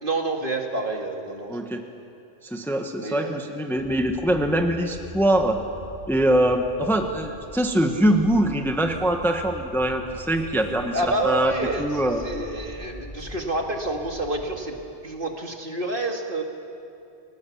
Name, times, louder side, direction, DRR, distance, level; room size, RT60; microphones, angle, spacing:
voice 1, 0.0-1.7 3.0-3.4 10.9-11.9 12.2-14.8 15.0-16.4, right 2 dB, 50° right, 2 dB, 2.3 m, -28 dB
voice 2, 1.5-1.8 2.4-5.6 6.1-11.5 11.8-12.2, right 1 dB, ahead, 4 dB, 1.2 m, -23 dB
sound 1, 3.7-14.6, equal, 35° left, 5.8 m, -42 dB
29.5 x 19.0 x 7.2 m, 2.7 s
omnidirectional pair, 1.2 m